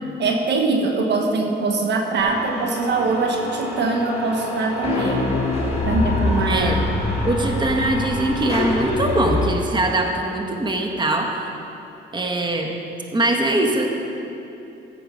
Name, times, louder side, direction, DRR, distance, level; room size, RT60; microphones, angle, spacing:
voice 1, 0.2-5.4 5.8-6.9, right 3 dB, 60° right, 2 dB, 1.4 m, -22 dB
sound 1, 2.2-9.5, left 2 dB, 30° left, 3.0 m, -25 dB
voice 2, 6.2-6.8 7.2-11.5 12.1-12.7 13.1-13.9, right 2 dB, 25° right, 2 dB, 1.3 m, -22 dB
14.5 x 7.8 x 5.4 m, 2.9 s
cardioid pair, 90°, 20 cm